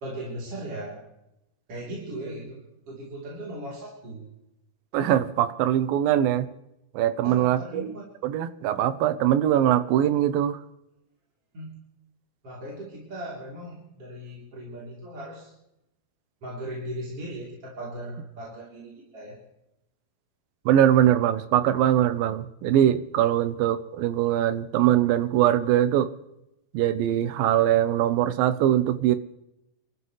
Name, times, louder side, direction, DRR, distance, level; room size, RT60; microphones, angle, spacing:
voice 1, 0.0-1.1 1.7-4.3 7.2-8.0 11.5-11.8 12.4-15.5 16.4-19.4, right 1 dB, 40° right, -5 dB, 4.1 m, -38 dB
voice 2, 4.9-6.5 6.9-7.9 8.2-10.6 20.7-26.1 26.7-29.2, right 11 dB, 80° right, 12 dB, 2.5 m, -22 dB
28.0 x 14.0 x 3.2 m, 0.87 s
omnidirectional pair, 4.2 m